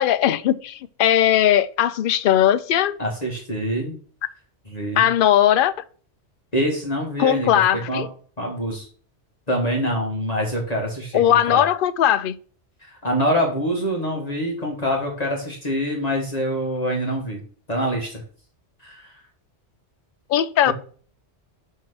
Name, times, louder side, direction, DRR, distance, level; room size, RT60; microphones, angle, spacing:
voice 1, 0.0-3.0 5.0-5.7 7.2-8.1 11.1-12.4 20.3-20.7, left 11 dB, 60° left, 0.6 m, -18 dB
voice 2, 3.0-4.0 4.7-5.1 6.5-7.5 7.9-8.1 8.4-8.9 9.5-11.6 12.9-17.4 17.7-18.2 18.8-19.1 20.7-20.8, equal, 35° left, 1.9 m, -25 dB
5.6 x 4.6 x 6.2 m
omnidirectional pair, 1.2 m